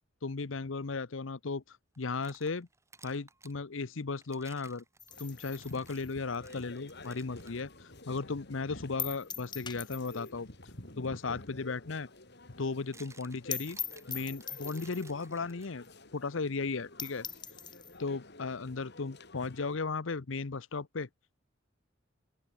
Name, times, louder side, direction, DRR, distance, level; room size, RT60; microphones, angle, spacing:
voice 1, 0.2-2.7 3.0-4.8 5.2-7.7 8.1-10.5 11.0-12.1 12.6-13.8 14.1-15.8 16.1-17.3 18.0-21.1, left 4 dB, 75° left, 0.8 m, -36 dB
sound 1, 1.9-3.6 4.2-7.6 8.1-8.2 8.9-9.1 11.2-11.3 12.5-16.0, right 3 dB, 15° right, 5.5 m, -58 dB
sound 2, 5.0-7.6 8.0-8.1 8.4-8.5 9.0-10.4 10.7-10.8 11.1-11.2 11.6-11.7 11.9-12.0 12.3-12.4 12.7-12.8 13.1-13.2 13.5-15.1 15.8-15.9 16.3-16.4 16.7-16.8 17.0-18.0, left 7 dB, 25° left, 5.1 m, -41 dB
sound 3, 5.1-19.8, left 2 dB, 60° left, 6.0 m, -51 dB
open air
head